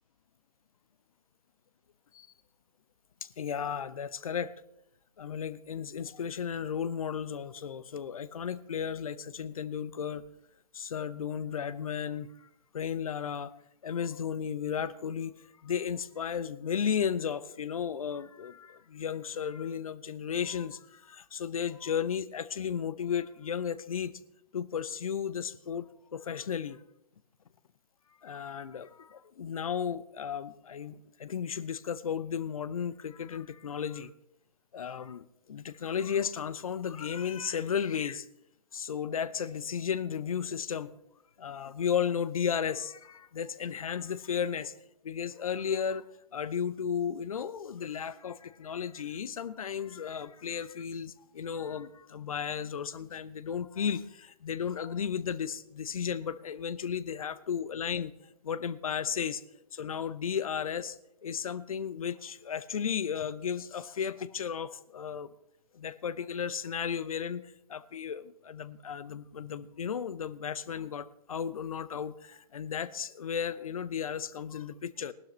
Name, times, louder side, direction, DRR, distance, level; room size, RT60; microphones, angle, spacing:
voice 1, 3.2-4.5 5.2-10.2 10.7-12.5 12.7-13.5 13.8-15.3 15.6-24.1 24.5-26.8 28.2-34.1 34.7-38.3 38.7-40.9 41.4-44.7 45.0-46.0 46.3-58.1 58.4-59.4 59.7-61.0 61.2-65.3 65.7-67.4 67.7-75.1, left 7 dB, 60° left, 16 dB, 0.7 m, -34 dB
18.5 x 12.0 x 3.2 m, 0.77 s
figure-of-eight pair, 120°, 20 cm